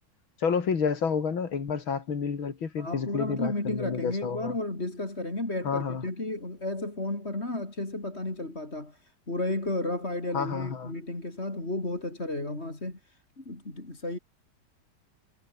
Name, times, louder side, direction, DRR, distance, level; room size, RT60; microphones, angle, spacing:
voice 1, 0.4-4.6 5.6-6.0 10.3-10.9, left 6 dB, 90° left, 3.3 m, -30 dB
voice 2, 2.8-14.2, left 2 dB, 30° left, 4.9 m, -33 dB
omnidirectional pair, 2.1 m